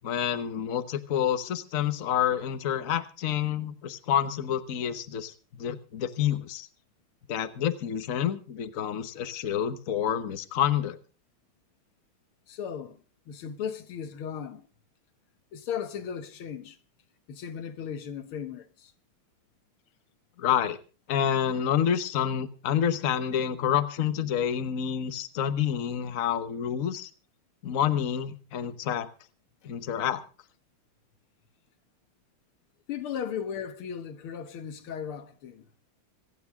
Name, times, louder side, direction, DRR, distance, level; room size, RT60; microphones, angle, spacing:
voice 1, 0.0-6.7 7.3-11.0 20.4-20.8 21.1-27.1 27.6-29.1 29.6-30.2, left 9 dB, 45° left, 1.3 m, -28 dB
voice 2, 12.5-13.0 13.3-14.6 15.5-16.8 17.3-18.9 32.9-35.7, left 8 dB, 90° left, 2.1 m, -36 dB
26.0 x 9.5 x 3.6 m
omnidirectional pair, 2.3 m